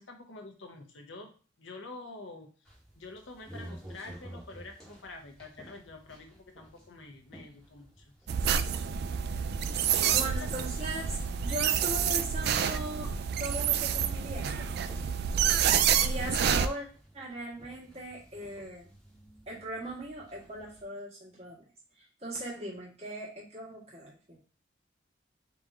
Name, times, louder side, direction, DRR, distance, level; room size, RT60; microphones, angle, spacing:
voice 1, 0.0-1.3 1.6-2.5 3.0-8.1 9.9-10.9 11.6-11.8 12.1-12.3, left 3 dB, 85° left, 4 dB, 0.9 m, -47 dB
sound 1, 2.7-20.8, right 1 dB, 5° left, 1.5 m, -53 dB
sound 2, 8.3-16.7, right 8 dB, 60° right, 0.3 m, -28 dB
voice 2, 10.1-13.1 13.4-15.1 16.0-16.9 17.1-18.9 19.5-21.6 22.0-24.4, right 1 dB, 35° right, -6 dB, 2.0 m, -39 dB
3.9 x 3.0 x 3.7 m, 0.39 s
head